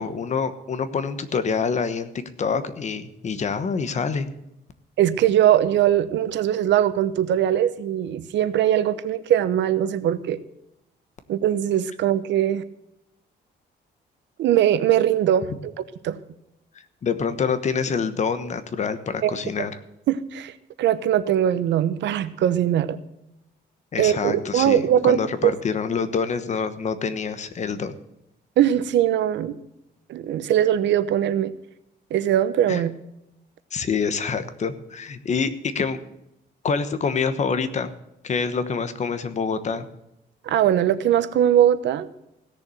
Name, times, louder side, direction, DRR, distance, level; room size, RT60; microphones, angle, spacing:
voice 1, 0.0-2.1 2.4-4.3 17.0-19.8 23.9-27.9 32.7-32.8 33.7-36.0 36.6-37.9 38.2-39.8, left 5 dB, 40° left, 11 dB, 1.2 m, -26 dB
voice 2, 5.0-10.4 11.3-12.6 14.4-15.7 16.0-16.2 19.2-19.7 20.1-20.5 20.8-23.0 24.0-25.5 28.6-29.6 30.1-31.5 32.1-32.9 40.4-42.1, right 11 dB, 80° right, 13 dB, 0.9 m, -21 dB
16.5 x 6.9 x 7.8 m, 0.84 s
cardioid pair, 135°, 18 cm